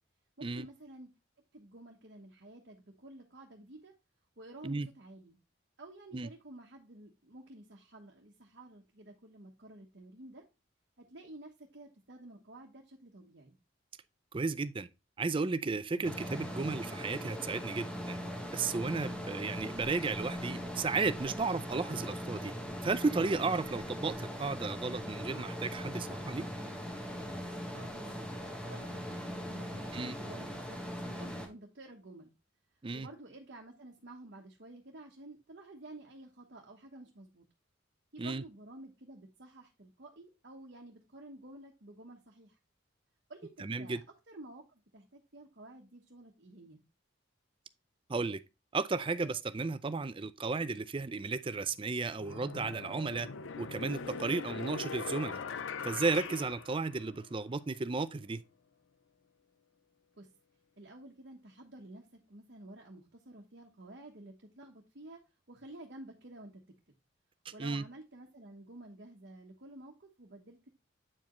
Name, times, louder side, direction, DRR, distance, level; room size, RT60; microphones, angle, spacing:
voice 1, 0.4-1.1 1.5-3.9 4.4-5.4 5.8-10.4 11.0-13.6 27.7-28.3 28.6-32.3 32.9-37.4 38.1-42.6 43.3-44.0 44.3-46.8 60.2-60.3 60.8-65.2 65.5-66.6 67.5-70.7, right 1 dB, 55° right, 1.1 m, -51 dB
voice 2, 14.3-14.9 15.2-18.2 18.5-22.5 22.8-26.5 29.9-30.1 32.8-33.1 38.2-38.4 43.6-44.0 48.1-48.4 48.7-53.3 53.6-55.4 55.8-58.4 67.6-67.8, right 3 dB, 25° right, 0.4 m, -34 dB
sound 1, 16.0-31.5, equal, 5° left, 1.3 m, -40 dB
sound 2, 51.4-51.6 52.2-57.4, left 5 dB, 75° left, 0.5 m, -41 dB
8.7 x 4.8 x 3.1 m
head